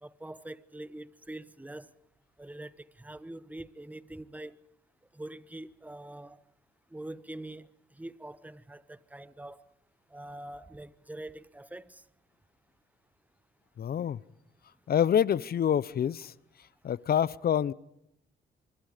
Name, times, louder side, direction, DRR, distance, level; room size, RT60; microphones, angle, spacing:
voice 1, 0.0-1.9 2.4-2.7 3.0-4.6 5.1-6.4 6.9-7.7 7.9-9.6 10.1-12.0, right 1 dB, 10° right, 1.1 m, -44 dB
voice 2, 13.8-14.2 14.9-16.3 16.8-17.7, left 9 dB, 50° left, 0.8 m, -26 dB
25.5 x 25.0 x 5.1 m
cardioid pair, 90°, 20 cm